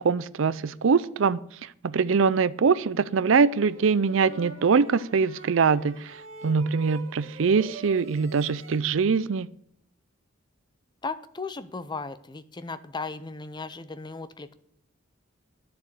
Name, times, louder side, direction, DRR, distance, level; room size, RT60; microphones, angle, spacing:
voice 1, 0.0-1.4 1.8-6.2 6.4-9.5, right 5 dB, 65° right, 17 dB, 0.5 m, -23 dB
sound 1, 3.5-8.8, right 4 dB, 85° right, 2.1 m, -44 dB
voice 2, 11.0-14.6, left 4 dB, 20° left, 13 dB, 0.6 m, -36 dB
10.5 x 6.9 x 6.6 m, 0.67 s
head